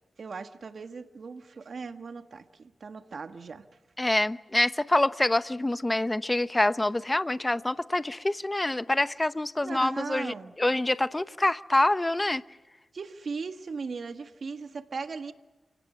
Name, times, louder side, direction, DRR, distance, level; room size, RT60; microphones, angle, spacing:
voice 1, 0.2-3.6 9.6-10.5 12.9-15.3, right 4 dB, 65° right, 7 dB, 1.6 m, -38 dB
voice 2, 4.0-12.4, left 1 dB, 20° left, 13 dB, 0.9 m, -26 dB
28.5 x 17.5 x 8.4 m, 1.2 s
cardioid pair, 50°, 0 cm